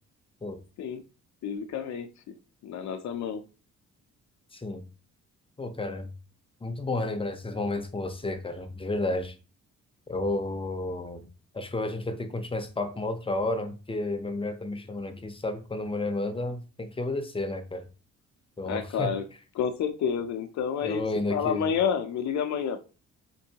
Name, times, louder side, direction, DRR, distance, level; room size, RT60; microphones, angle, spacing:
voice 1, 1.4-2.3 2.6-3.4 18.7-19.3 19.5-21.0 21.3-22.8, left 7 dB, 65° left, 0.6 m, -29 dB
voice 2, 4.5-4.8 5.6-6.1 6.6-9.4 10.1-11.3 11.5-17.9 18.6-19.1 20.8-21.7, left 2 dB, 20° left, 0.7 m, -31 dB
4.5 x 2.6 x 2.8 m
cardioid pair, 90°, 30 cm